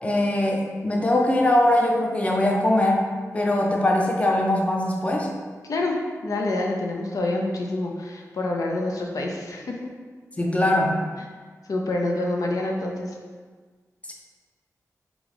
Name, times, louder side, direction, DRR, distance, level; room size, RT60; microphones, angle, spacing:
voice 1, 0.0-3.1 3.3-5.3 10.4-11.0, left 1 dB, 20° left, 0 dB, 0.5 m, -21 dB
voice 2, 5.6-9.8 11.7-13.1, left 2 dB, 75° left, 0 dB, 0.5 m, -27 dB
3.7 x 3.5 x 3.3 m, 1.5 s
wide cardioid pair, 105°, 6 cm